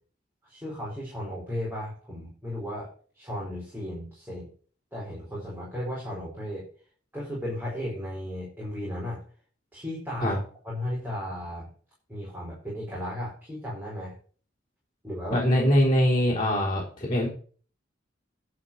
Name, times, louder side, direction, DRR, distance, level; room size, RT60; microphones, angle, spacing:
voice 1, 0.4-2.9 3.1-4.5 4.9-6.6 7.1-9.2 9.7-10.4 10.6-11.7 12.1-14.1 15.0-15.4, left 1 dB, 10° right, -6 dB, 4.6 m, -35 dB
voice 2, 15.3-17.3, equal, 25° left, -8 dB, 3.6 m, -23 dB
11.5 x 5.0 x 7.2 m, 0.42 s
head